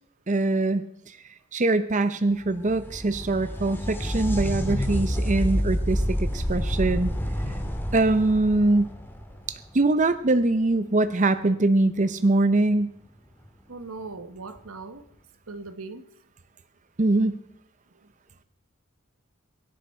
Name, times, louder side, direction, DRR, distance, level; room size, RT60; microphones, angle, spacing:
voice 1, 0.3-0.8 1.5-7.1 7.9-8.9 9.7-12.9 17.0-17.4, right 2 dB, 35° right, 0.7 m, -23 dB
sound 1, 2.4-10.0 13.4-13.5 14.6-14.7, equal, 10° left, 1.7 m, -28 dB
voice 2, 13.7-15.1 15.5-16.0, right 3 dB, 85° right, 1.3 m, -39 dB
23.5 x 10.5 x 4.4 m
head